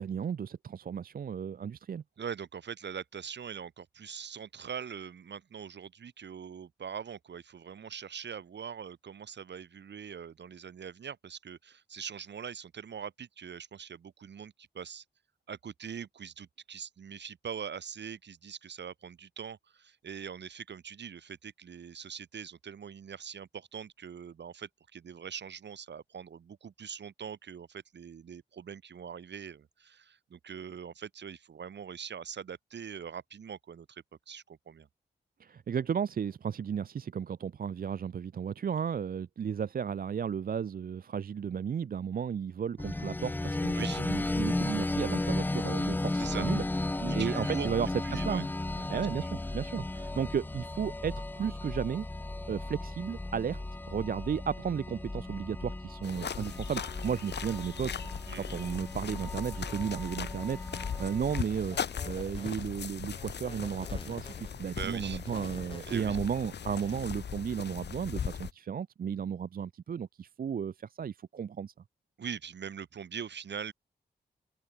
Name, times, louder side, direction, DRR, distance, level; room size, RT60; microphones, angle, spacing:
voice 1, 0.0-2.0 35.4-46.6 46.9-48.5 48.9-52.1 52.5-53.6 53.9-58.0 58.4-61.8 62.0-71.7, right 7 dB, 55° right, 0.5 m, -34 dB
voice 2, 2.2-15.0 15.5-34.9 43.7-44.0 46.1-46.5 47.0-47.7 48.0-48.4 48.8-49.0 58.3-58.5 64.6-65.2 65.8-66.2 72.2-73.7, right 7 dB, 75° right, 2.7 m, -42 dB
sound 1, 42.8-61.4, left 2 dB, 10° left, 0.4 m, -35 dB
sound 2, 56.0-68.5, left 7 dB, 70° left, 1.1 m, -39 dB
sound 3, 61.3-67.1, left 2 dB, 30° left, 6.5 m, -49 dB
supercardioid pair, 40°, 18 cm